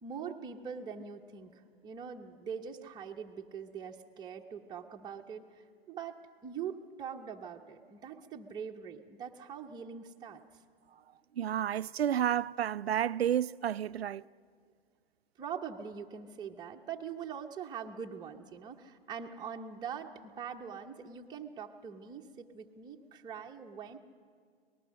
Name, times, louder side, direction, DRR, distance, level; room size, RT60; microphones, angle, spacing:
voice 1, 0.0-10.4 15.4-24.0, right 7 dB, 15° right, 1.0 m, -43 dB
voice 2, 11.4-14.2, right 10 dB, 85° right, 0.5 m, -31 dB
25.0 x 19.0 x 6.5 m
hypercardioid pair, 115°, 30 cm